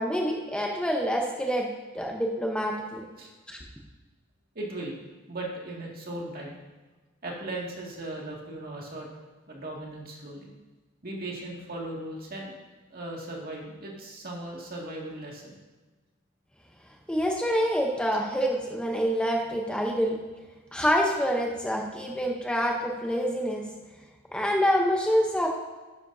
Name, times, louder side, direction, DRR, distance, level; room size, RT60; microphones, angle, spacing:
voice 1, 0.0-1.7 1.9-3.0 3.5-3.6 17.1-20.2 20.7-23.6 24.3-25.5, equal, 5° left, 0 dB, 0.8 m, -26 dB
voice 2, 4.5-4.9 5.3-6.6 7.2-9.1 9.5-10.5 11.0-12.5 12.9-15.5, right 1 dB, 45° right, -2 dB, 2.1 m, -37 dB
11.5 x 9.4 x 2.7 m, 1.2 s
head